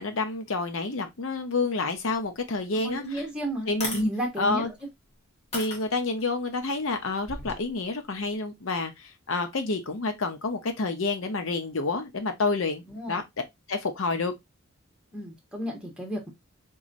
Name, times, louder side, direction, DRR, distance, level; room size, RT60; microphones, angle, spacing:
voice 1, 0.0-3.2 3.7-4.0 4.4-4.7 5.5-13.2 13.7-14.3, left 3 dB, 70° left, 0.8 m, -29 dB
voice 2, 2.8-4.7 12.9-13.2 15.1-16.3, equal, 5° right, 1.2 m, -32 dB
sound 1, 3.0-3.1 3.7-4.1 4.8-4.9 5.5-6.3 7.2-7.6, left 2 dB, 30° left, 1.4 m, -34 dB
3.8 x 3.0 x 2.5 m
head